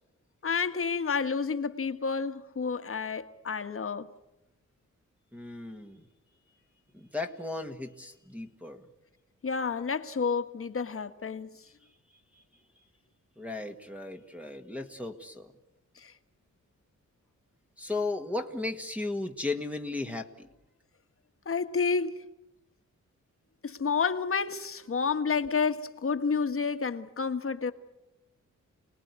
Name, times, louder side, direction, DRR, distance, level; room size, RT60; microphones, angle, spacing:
voice 1, 0.4-4.1 9.4-11.5 16.0-16.1 21.4-22.1 23.6-27.7, left 5 dB, 45° left, 1.6 m, -30 dB
voice 2, 5.3-6.0 6.9-8.8 13.4-15.5 17.8-20.3, left 2 dB, 5° right, 1.7 m, -35 dB
29.5 x 20.0 x 9.6 m
wide cardioid pair, 135°, 31 cm